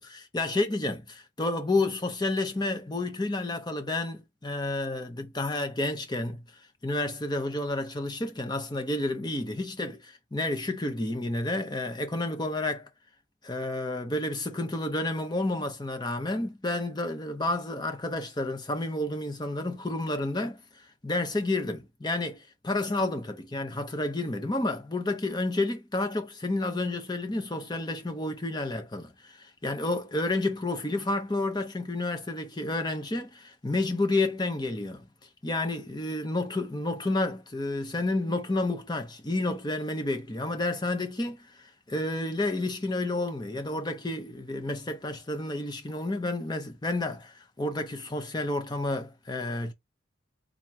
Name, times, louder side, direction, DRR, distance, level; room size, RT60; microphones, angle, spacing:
voice 1, 0.0-6.4 6.8-12.9 13.4-35.1 35.4-49.7, left 2 dB, 20° left, 0.8 m, -30 dB
3.8 x 2.9 x 3.3 m
head